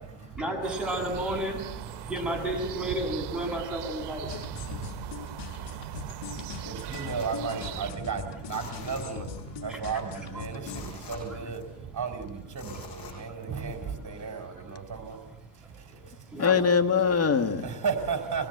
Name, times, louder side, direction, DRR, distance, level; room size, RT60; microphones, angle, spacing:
voice 1, 0.3-4.6 5.4-5.5 6.5-6.7 7.8-7.9 9.7-10.6 10.9-11.4 13.1-13.6 14.5-14.9 15.5-16.5, right 1 dB, ahead, 7.9 m, -34 dB
sound 1, 0.6-7.9, right 14 dB, 55° right, 1.1 m, -40 dB
sound 2, 4.3-10.8, left 6 dB, 60° left, 5.1 m, -41 dB
voice 2, 4.6-16.3 17.6-18.5, right 5 dB, 35° right, 5.0 m, -35 dB
sound 3, 6.9-8.0 8.4-9.6 9.9-10.0 10.4-11.9 12.5-13.8 14.2-14.3, left 5 dB, 45° left, 7.6 m, -46 dB
voice 3, 12.8-13.6 16.4-17.7, left 6 dB, 30° left, 2.1 m, -25 dB
24.5 x 20.0 x 8.1 m
supercardioid pair, 95°, 47 cm